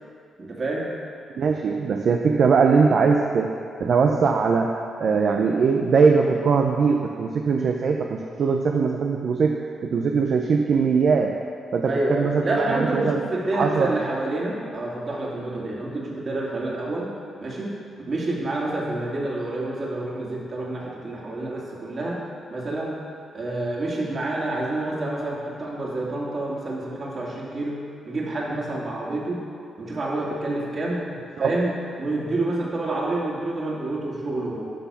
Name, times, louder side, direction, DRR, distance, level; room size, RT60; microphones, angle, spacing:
voice 1, 0.4-0.9 11.8-17.1 17.4-17.7 18.0-22.2 22.5-23.0 23.3-27.8 28.0-29.4 29.8-31.0 31.4-34.7, right 2 dB, 45° right, -4 dB, 2.4 m, -28 dB
voice 2, 1.3-9.6 9.8-11.4 11.7-13.2 13.5-14.0 31.4-31.5, right 5 dB, 60° right, 2 dB, 0.6 m, -21 dB
11.5 x 4.1 x 6.9 m, 2.4 s
cardioid pair, 75°, 0 cm